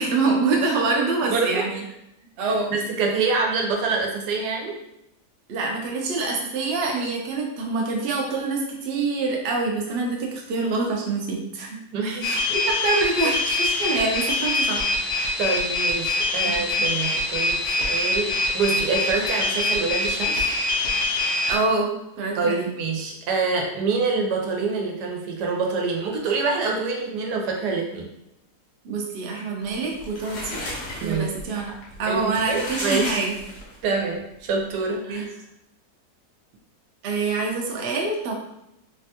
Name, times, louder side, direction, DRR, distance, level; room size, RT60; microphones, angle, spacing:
voice 1, 0.0-1.8 2.4-2.7 5.5-11.8 12.2-14.8 16.5-16.6 21.5-22.7 28.8-30.6 31.0-31.7 32.0-33.3 35.1-35.2 37.0-38.3, right 3 dB, 65° right, 0 dB, 0.6 m, -25 dB
voice 2, 1.3-1.7 2.7-4.8 11.9-12.4 13.2-13.3 15.4-20.4 22.4-28.1 31.0-31.3 32.1-33.2 33.8-35.3, right 4 dB, 90° right, 1 dB, 1.2 m, -26 dB
sound 1, 12.2-21.6, left 2 dB, 60° left, 0.8 m, -24 dB
sound 2, 29.7-33.9, left 1 dB, 85° left, 1.4 m, -34 dB
3.3 x 2.2 x 2.7 m, 0.83 s
omnidirectional pair, 1.7 m